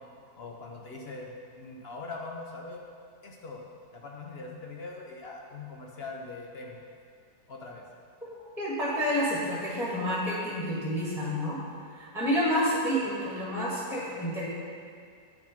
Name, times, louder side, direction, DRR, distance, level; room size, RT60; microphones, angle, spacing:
voice 1, 0.4-2.8 3.2-3.6 3.9-6.8 7.5-7.8, left 3 dB, 50° left, 0 dB, 0.8 m, -42 dB
voice 2, 8.6-11.6 11.9-14.5, equal, ahead, -6 dB, 1.5 m, -29 dB
8.3 x 6.0 x 5.1 m, 2.1 s
omnidirectional pair, 1.8 m